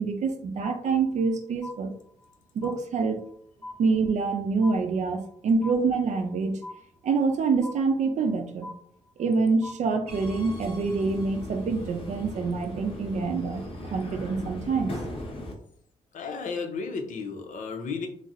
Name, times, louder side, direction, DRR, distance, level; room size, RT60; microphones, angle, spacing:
voice 1, 0.0-1.9 2.6-3.2 3.8-6.6 7.0-8.7 9.2-13.6 13.9-14.9, right 4 dB, 65° right, 6 dB, 0.5 m, -26 dB
sound 1, 0.6-1.3 1.6-2.4 2.6-3.4 3.6-4.4 4.6-5.4 5.6-6.4 6.6-7.4 7.6-8.4 8.6-9.4 9.6-10.4, left 2 dB, 20° left, 0.5 m, -43 dB
Subway metro underground, 10.1-15.5, left 1 dB, 45° left, 0.8 m, -38 dB
voice 2, 16.1-18.1, left 4 dB, 80° left, 4 dB, 0.6 m, -33 dB
4.0 x 2.0 x 2.5 m, 0.62 s
wide cardioid pair, 135°, 13 cm